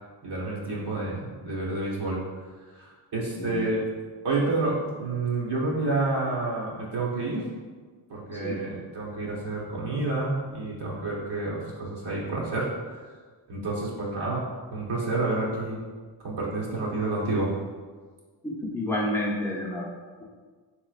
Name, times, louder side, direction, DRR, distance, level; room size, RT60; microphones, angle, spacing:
voice 1, 0.2-2.4 2.7-3.8 4.2-7.5 8.1-13.1 13.5-15.8 16.2-17.5, right 2 dB, 55° right, -5 dB, 1.0 m, -29 dB
voice 2, 3.3-3.7 8.3-8.6 18.4-20.2, left 1 dB, 5° left, -5 dB, 0.7 m, -30 dB
3.7 x 3.0 x 2.4 m, 1.5 s
cardioid pair, 85°, 47 cm